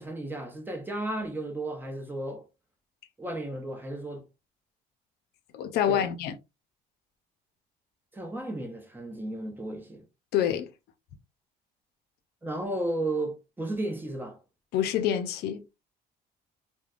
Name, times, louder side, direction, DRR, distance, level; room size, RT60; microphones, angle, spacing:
voice 1, 0.0-2.5 3.2-4.3 5.9-6.0 8.1-10.0 12.4-14.4, right 1 dB, 10° right, 0.7 m, -34 dB
voice 2, 5.5-6.3 10.3-10.7 14.7-15.6, left 10 dB, 75° left, 0.5 m, -27 dB
3.2 x 2.1 x 2.4 m
cardioid pair, 110°, 17 cm